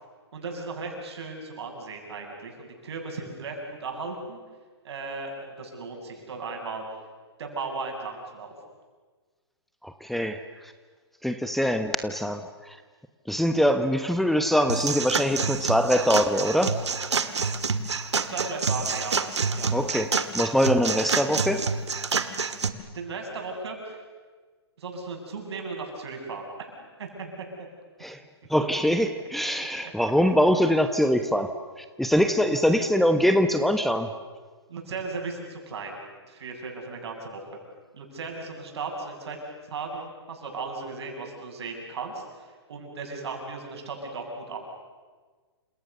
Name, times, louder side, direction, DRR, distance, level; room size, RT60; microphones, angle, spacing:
voice 1, 0.3-4.4 4.8-6.8 7.4-8.5 18.3-19.2 19.5-19.7 22.9-24.0 24.8-26.7 27.0-27.3 32.7-32.8 34.7-36.0 36.3-37.5 37.9-39.4 39.7-44.6, right 4 dB, 70° right, 2 dB, 7.7 m, -36 dB
voice 2, 9.8-10.7 11.2-12.8 13.3-16.8 19.7-21.6 28.0-28.2 28.5-34.1, equal, ahead, 9 dB, 1.1 m, -23 dB
sound 1, 14.7-22.7, right 5 dB, 90° right, 1.9 m, -27 dB
29.0 x 27.5 x 6.9 m, 1.4 s
hypercardioid pair, 130°, 14 cm